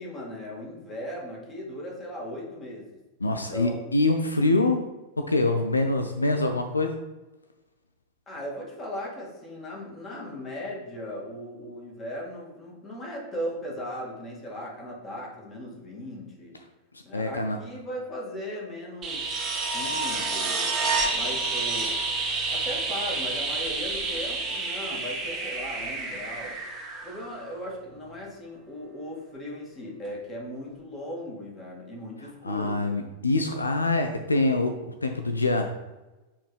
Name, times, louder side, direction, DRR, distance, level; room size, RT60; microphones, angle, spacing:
voice 1, 0.0-2.9 3.3-3.8 8.3-16.5 17.0-19.3 19.7-20.7 21.1-22.0 22.5-26.6 27.0-32.8, left 1 dB, 20° left, -3 dB, 2.2 m, -37 dB
voice 2, 3.2-4.8 5.2-7.0 17.1-17.6 32.4-35.7, left 2 dB, 80° left, 6 dB, 0.4 m, -25 dB
sound 1, 19.0-27.7 30.0-30.1, right 3 dB, 25° right, 1.6 m, -29 dB
7.6 x 4.4 x 3.3 m, 1.1 s
figure-of-eight pair, 90°, 0 cm